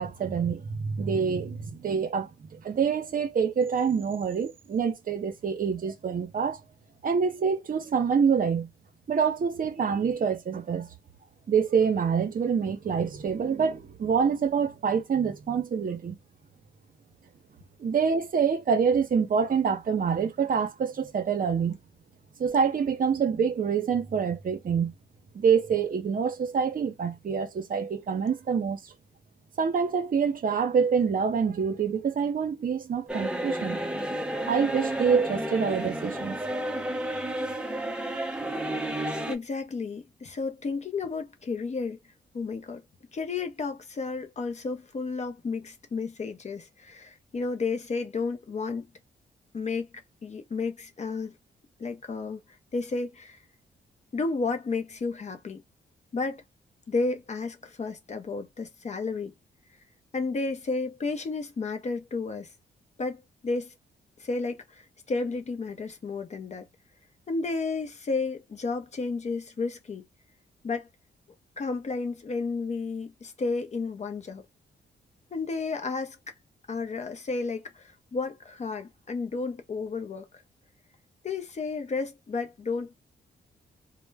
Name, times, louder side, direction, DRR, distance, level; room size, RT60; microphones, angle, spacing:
voice 1, 0.0-6.6 7.0-8.7 9.1-10.9 11.5-16.2 17.8-21.8 22.4-24.9 25.3-28.8 29.6-33.8 34.5-36.4, right 6 dB, 50° right, 0.6 m, -26 dB
sound 1, 33.1-39.4, right 1 dB, 5° right, 0.5 m, -31 dB
voice 2, 39.3-42.0 42.3-42.8 43.1-48.9 49.5-49.9 50.2-51.3 51.8-52.4 52.7-53.4 54.1-55.6 56.1-56.4 56.9-59.3 60.1-62.5 63.0-63.7 64.2-66.7 67.3-70.1 70.6-70.9 71.6-74.4 75.3-76.2 76.7-80.3 81.2-82.9, left 4 dB, 40° left, 0.6 m, -32 dB
2.1 x 2.0 x 3.3 m
cardioid pair, 85°, 18 cm